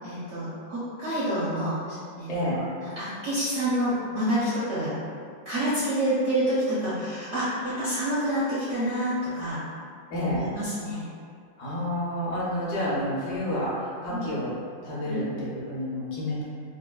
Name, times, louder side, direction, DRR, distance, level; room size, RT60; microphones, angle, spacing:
voice 1, 0.0-2.6 3.0-4.9 5.5-9.6 10.3-11.0 14.1-14.3 15.0-15.2, equal, 70° right, -10 dB, 0.7 m, -28 dB
voice 2, 2.3-2.6 10.1-10.4 11.6-14.5 14.8-16.4, left 1 dB, 70° left, -7 dB, 1.2 m, -29 dB
3.8 x 2.1 x 2.2 m, 2.2 s
omnidirectional pair, 2.0 m